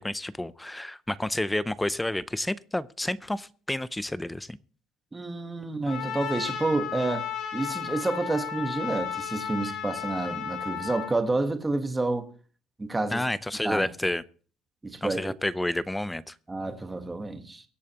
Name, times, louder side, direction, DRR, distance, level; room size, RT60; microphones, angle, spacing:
voice 1, 0.0-4.6 13.1-14.2 15.0-16.3, left 1 dB, 5° left, 0.4 m, -30 dB
voice 2, 5.1-7.3 7.5-12.3 12.8-13.2 13.6-13.9 14.8-15.3 16.5-17.6, right 2 dB, 10° right, 1.2 m, -29 dB
Trumpet, 5.9-11.1, left 8 dB, 65° left, 2.7 m, -34 dB
23.0 x 8.5 x 2.9 m
cardioid pair, 150°, 0 cm